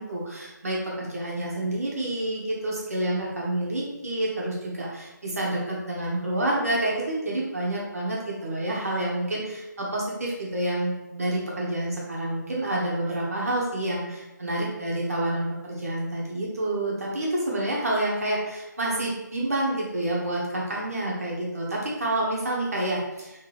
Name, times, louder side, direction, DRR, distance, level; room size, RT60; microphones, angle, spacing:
voice 1, 0.0-23.3, right 1 dB, 50° right, -4 dB, 1.1 m, -28 dB
3.3 x 3.2 x 3.1 m, 0.98 s
figure-of-eight pair, 175°, 10 cm